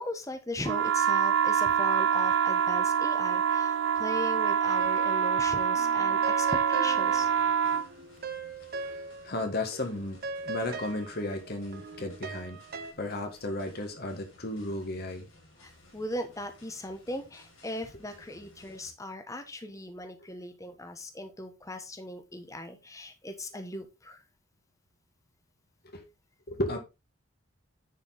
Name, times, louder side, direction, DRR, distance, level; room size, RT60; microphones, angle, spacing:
voice 1, 0.0-7.3 15.6-24.2, left 1 dB, 15° left, 1.0 m, -38 dB
sound 1, 0.6-7.9, right 7 dB, 70° right, 0.4 m, -26 dB
sound 2, 4.8-5.5 5.7-9.5 9.7-12.9, right 3 dB, 50° right, 0.9 m, -40 dB
sound 3, 6.9-18.9, left 1 dB, 90° left, 5.8 m, -58 dB
voice 2, 9.2-12.6 13.0-15.3 25.8-26.0 26.5-26.8, left 1 dB, 50° left, 1.7 m, -34 dB
10.5 x 4.6 x 3.9 m
head